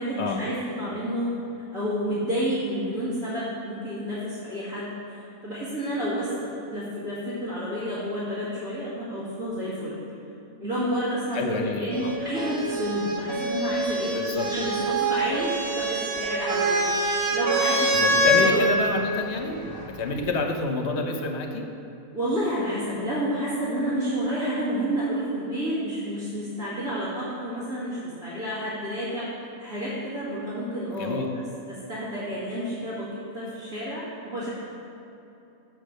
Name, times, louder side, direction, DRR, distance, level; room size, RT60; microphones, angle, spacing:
voice 1, 0.0-1.3 1.7-10.0 10.6-19.0 22.1-29.3 29.6-31.2 31.7-34.5, equal, 80° right, -12 dB, 2.4 m, -30 dB
voice 2, 11.3-12.2 14.1-14.5 17.9-21.6 31.0-31.3, left 3 dB, 60° left, 4 dB, 1.0 m, -28 dB
sound 1, 11.9-18.5 19.6-20.3, right 1 dB, 45° right, 1.2 m, -25 dB
6.7 x 6.5 x 6.4 m, 3.0 s
omnidirectional pair, 1.4 m